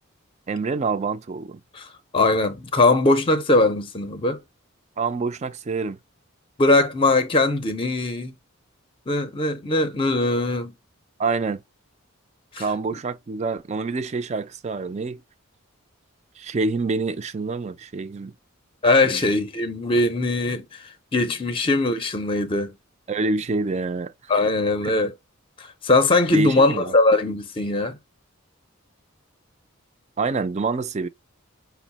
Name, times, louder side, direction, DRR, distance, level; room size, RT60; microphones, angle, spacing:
voice 1, 0.5-1.6 5.0-6.0 11.2-11.6 12.6-15.2 16.4-18.3 19.0-19.2 23.1-24.1 24.8-25.0 26.3-26.9 30.2-31.1, right 3 dB, 30° right, 0.4 m, -26 dB
voice 2, 2.1-4.4 6.6-8.3 9.1-10.7 12.5-12.7 18.8-22.7 24.3-25.1 25.6-28.0, left 2 dB, 25° left, 0.6 m, -21 dB
5.3 x 2.0 x 4.0 m
head